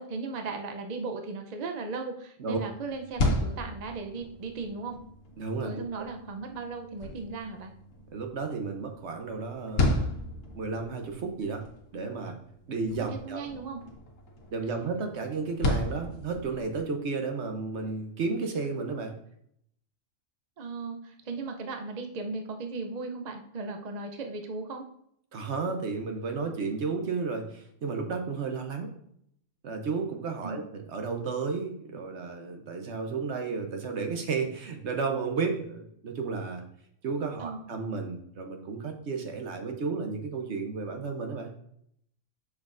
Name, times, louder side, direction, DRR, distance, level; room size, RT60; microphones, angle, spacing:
voice 1, 0.0-5.0 5.6-7.7 13.0-13.8 20.6-24.9 30.4-30.6 37.4-37.6, right 4 dB, 45° right, 4 dB, 0.6 m, -37 dB
sound 1, 2.9-16.9, left 2 dB, 80° left, 1.3 m, -34 dB
voice 2, 5.4-6.0 8.1-10.0 10.3-11.6 11.9-12.3 12.7-13.5 14.5-19.1 25.3-28.9 29.6-36.6 37.0-41.5, right 4 dB, 65° right, 5 dB, 1.1 m, -33 dB
6.2 x 6.1 x 2.5 m, 0.70 s
omnidirectional pair, 1.3 m